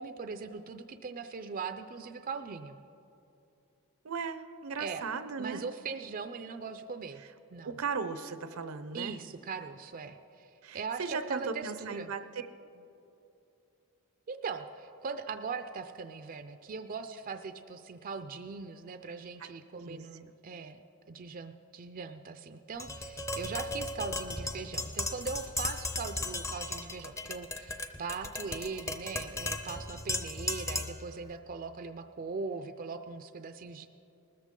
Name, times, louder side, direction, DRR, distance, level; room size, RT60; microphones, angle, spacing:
voice 1, 0.0-2.8 4.8-5.0 5.4-7.2 7.5-7.8 8.9-12.1 14.3-20.8 21.1-33.9, right 5 dB, 40° right, 8 dB, 0.4 m, -40 dB
voice 2, 4.0-5.6 7.6-9.2 10.6-12.5 19.4-20.0, right 5 dB, 80° right, 11 dB, 0.7 m, -37 dB
Tap, 22.8-31.1, left 2 dB, 15° left, 0.6 m, -36 dB
20.0 x 13.5 x 3.8 m, 2.8 s
head